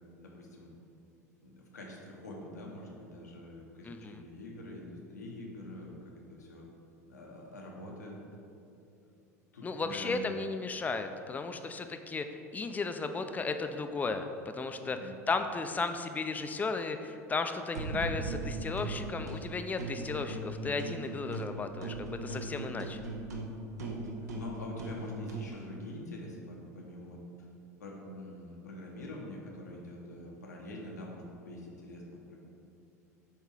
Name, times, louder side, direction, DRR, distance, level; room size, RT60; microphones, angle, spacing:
voice 1, 0.2-0.7 1.4-6.7 7.1-8.1 9.5-10.3 14.8-15.1 24.3-27.2 27.8-32.4, left 1 dB, 80° left, -1 dB, 1.0 m, -45 dB
voice 2, 3.8-4.2 9.6-12.3 12.5-23.0, left 4 dB, 20° left, 7 dB, 0.4 m, -35 dB
sound 1, 17.7-19.4 19.8-21.5 21.8-25.5, right 2 dB, 75° right, 0.7 m, -38 dB
7.4 x 2.7 x 4.7 m, 2.6 s
figure-of-eight pair, 75°, 9 cm